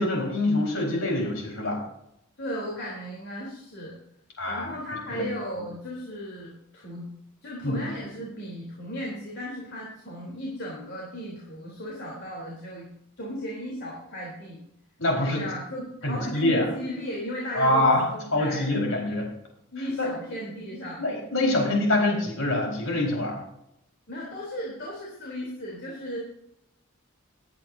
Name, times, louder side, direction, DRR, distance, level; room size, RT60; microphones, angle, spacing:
voice 1, 0.0-1.8 4.4-4.7 5.1-5.2 7.6-7.8 15.0-15.4 16.0-16.7 17.5-18.0 18.3-19.3 20.0-20.1 21.0-23.4, left 1 dB, 75° left, -1 dB, 4.7 m, -25 dB
voice 2, 2.4-4.0 4.5-7.1 7.4-12.9 13.2-14.6 15.3-18.7 19.7-21.0 24.1-26.2, equal, 55° left, -3 dB, 3.5 m, -35 dB
20.5 x 10.0 x 2.7 m, 0.76 s
head